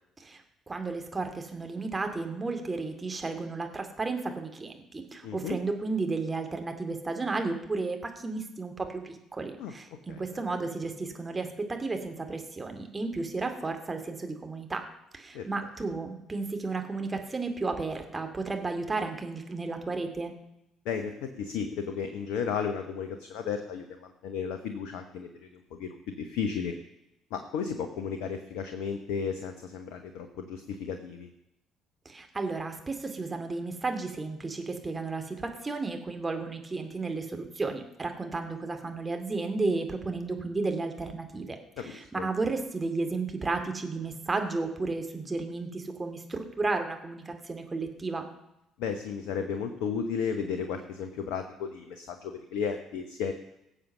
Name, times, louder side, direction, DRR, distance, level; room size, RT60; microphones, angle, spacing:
voice 1, 0.7-14.8 15.1-20.3 32.1-48.3, right 3 dB, 25° right, 5 dB, 2.4 m, -33 dB
voice 2, 5.2-5.6 9.6-9.7 10.1-10.4 15.3-15.5 20.8-26.8 27.3-31.3 41.8-42.3 48.8-53.3, left 6 dB, 65° left, 7 dB, 1.0 m, -34 dB
18.0 x 7.5 x 6.6 m, 0.86 s
figure-of-eight pair, 50°, 0 cm